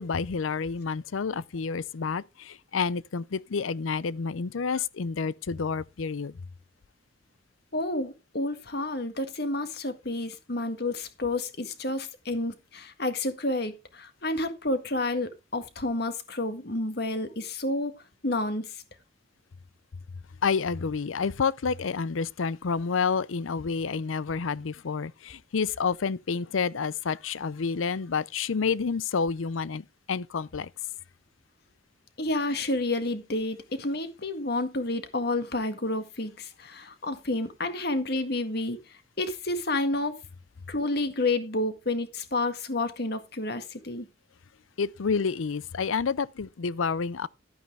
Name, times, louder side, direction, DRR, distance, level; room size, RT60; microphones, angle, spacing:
voice 1, 0.0-6.4 20.4-30.7 44.8-47.3, left 5 dB, 85° left, 0.6 m, -29 dB
voice 2, 7.7-17.9 18.2-18.8 32.2-40.2 40.7-44.1, left 2 dB, 50° left, 1.8 m, -30 dB
12.0 x 9.4 x 3.4 m
head